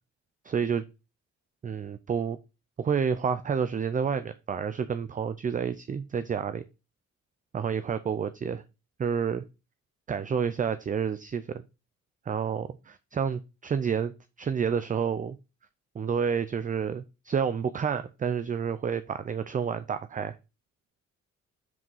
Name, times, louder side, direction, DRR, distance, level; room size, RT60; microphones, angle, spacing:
voice 1, 0.4-0.8 1.6-2.4 2.8-6.6 7.5-8.6 9.0-9.4 10.1-11.6 12.3-14.1 14.4-15.4 16.0-20.3, right 7 dB, 25° right, 0.4 m, -29 dB
7.6 x 3.7 x 5.5 m
cardioid pair, 90°, 30 cm